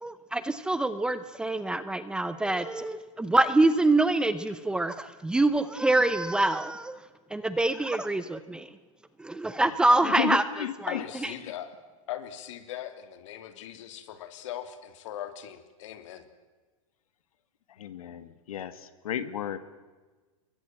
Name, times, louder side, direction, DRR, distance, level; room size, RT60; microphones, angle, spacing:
voice 1, 0.0-7.0 7.3-8.7 9.2-10.4, right 2 dB, 5° right, 13 dB, 0.7 m, -25 dB
voice 2, 10.0-11.0 11.4-11.5 17.8-19.6, left 10 dB, 80° left, 12 dB, 1.8 m, -33 dB
voice 3, 10.9-11.7 12.1-16.3, left 11 dB, 60° left, 9 dB, 3.1 m, -39 dB
27.0 x 22.5 x 7.8 m, 1.3 s
supercardioid pair, 155°, 18 cm